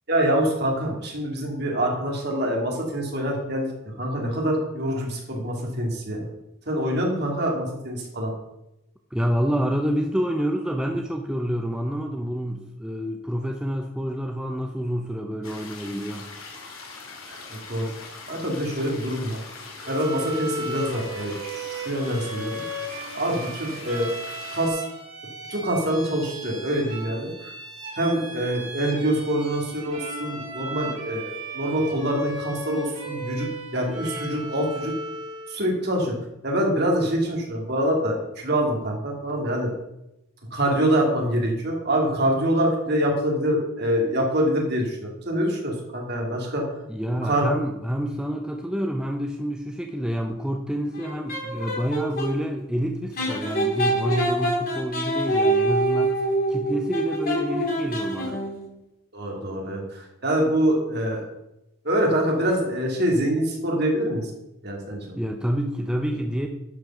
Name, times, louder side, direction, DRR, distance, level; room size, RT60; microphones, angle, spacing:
voice 1, 0.1-6.2 6.7-8.3 17.3-19.4 19.9-22.6 23.1-24.1 24.5-24.8 25.5-27.5 28.0-34.9 35.5-36.1 36.4-39.7 40.5-46.6 47.2-47.5 59.1-61.2 61.8-64.3 64.6-65.1, right 1 dB, 50° right, 0 dB, 2.6 m, -25 dB
voice 2, 9.1-16.3 46.9-56.2 56.5-58.4 65.2-66.5, equal, 5° right, 3 dB, 0.6 m, -28 dB
sound 1, 15.4-24.7, left 4 dB, 80° left, 2.4 m, -42 dB
Bowed string instrument, 19.8-35.6, right 1 dB, 35° right, 3.6 m, -36 dB
sound 2, 50.9-52.3 53.2-58.6, right 1 dB, 45° left, 3.6 m, -25 dB
11.5 x 5.2 x 5.9 m, 0.88 s
head